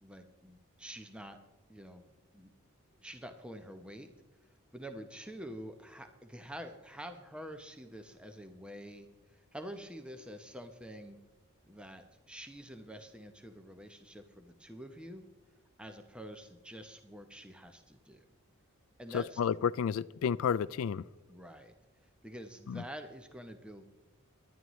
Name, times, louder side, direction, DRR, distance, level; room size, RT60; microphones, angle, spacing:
voice 1, 0.0-1.4 1.7-2.5 3.0-4.1 4.4-11.2 11.7-15.3 15.8-18.2 19.0-19.4 21.3-21.7 22.2-23.9, equal, 5° right, 7 dB, 0.7 m, -47 dB
voice 2, 19.1-21.0 22.7-22.8, left 7 dB, 70° left, 15 dB, 0.3 m, -31 dB
24.5 x 11.0 x 3.1 m, 1.2 s
head